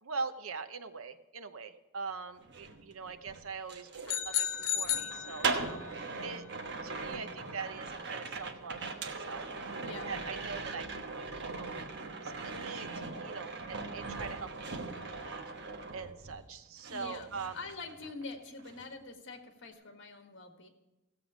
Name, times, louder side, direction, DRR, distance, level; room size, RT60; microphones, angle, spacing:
voice 1, 0.0-5.8 6.2-6.4 6.8-9.5 10.1-11.0 11.3-11.8 12.2-15.4 15.9-17.6, right 5 dB, 90° right, 10 dB, 0.8 m, -42 dB
sound 1, 2.4-16.5 16.8-18.3 18.6-18.9, right 3 dB, 60° right, 1.2 m, -40 dB
sound 2, 4.1-5.9, left 10 dB, 85° left, 0.6 m, -33 dB
voice 2, 9.8-10.1 16.9-20.7, left 3 dB, 60° left, 4 dB, 1.7 m, -45 dB
16.5 x 7.8 x 5.0 m, 1.0 s
head